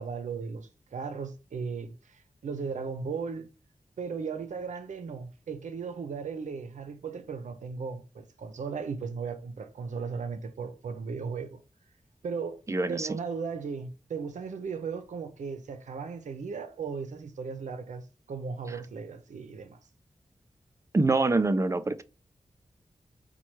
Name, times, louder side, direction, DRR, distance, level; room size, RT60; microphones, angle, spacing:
voice 1, 0.0-3.5 4.0-11.6 12.2-12.6 12.9-19.8, right 5 dB, 85° right, 0.5 m, -36 dB
voice 2, 12.7-13.1 20.9-22.0, right 2 dB, 25° right, 0.4 m, -25 dB
4.3 x 2.2 x 3.0 m
cardioid pair, 50°, 12 cm